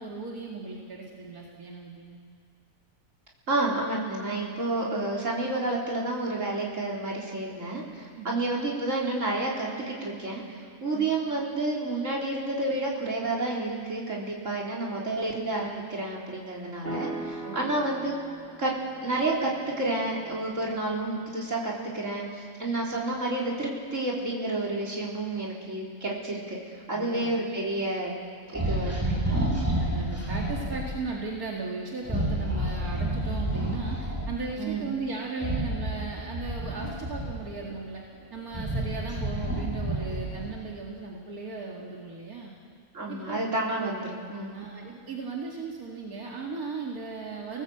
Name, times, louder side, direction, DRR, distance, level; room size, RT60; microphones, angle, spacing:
voice 1, 0.0-2.1 8.1-8.4 10.9-11.1 17.4-17.7 22.9-23.0 26.9-27.3 28.7-29.5 29.8-38.0 38.3-42.5 43.1-43.4 44.5-47.6, right 4 dB, 80° right, -2 dB, 2.7 m, -37 dB
voice 2, 3.5-18.1 18.6-18.7 19.0-19.5 19.8-26.6 26.9-28.1 28.5-28.9 29.3-29.5 34.6-34.9 42.9-44.6, right 2 dB, 55° right, -4 dB, 4.4 m, -30 dB
sound 1, 16.8-21.0, right 2 dB, 40° right, 3.9 m, -40 dB
sound 2, 28.5-30.9 32.0-34.4 35.3-37.7 38.2-40.6, right 1 dB, 10° right, 6.5 m, -29 dB
29.5 x 19.0 x 8.0 m, 2.2 s
omnidirectional pair, 1.5 m